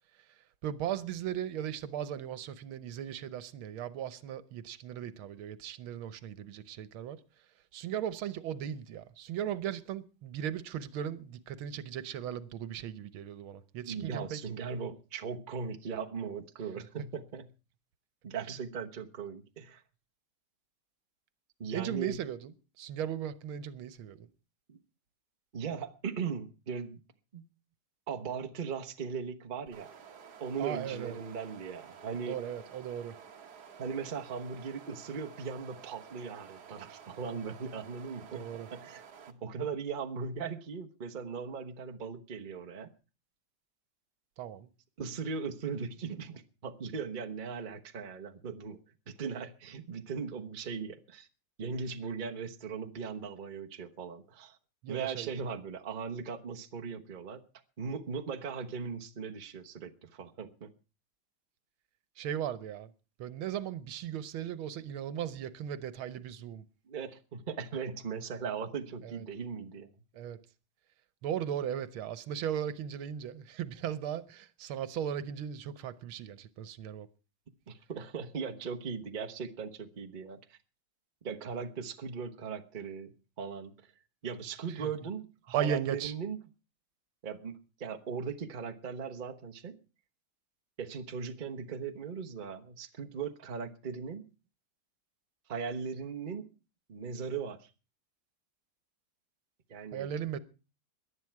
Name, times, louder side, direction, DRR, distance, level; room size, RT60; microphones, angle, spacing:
voice 1, 0.6-7.2 7.7-14.4 21.7-22.5 22.8-24.3 30.6-31.2 32.2-33.2 38.3-38.7 44.4-44.7 54.8-55.3 62.2-62.9 63.2-66.6 69.0-69.2 70.1-70.4 71.2-77.1 84.8-84.9 85.5-86.1 99.9-100.4, right 9 dB, 85° right, 1.7 m, -37 dB
voice 2, 13.8-17.5 18.2-19.8 21.6-22.2 24.7-24.8 25.5-27.0 27.3-27.4 28.1-29.9 30.4-32.4 33.8-39.0 39.3-42.9 45.0-51.3 51.6-54.6 54.9-57.4 57.8-60.7 66.9-69.9 77.7-80.6 81.2-83.9 84.2-86.4 87.2-89.8 90.8-94.3 95.5-96.5 96.9-97.7 99.7-100.1, right 5 dB, 30° right, 1.0 m, -39 dB
sound 1, 29.7-39.3, right 7 dB, 55° right, 1.7 m, -52 dB
18.0 x 11.0 x 4.6 m
omnidirectional pair, 2.2 m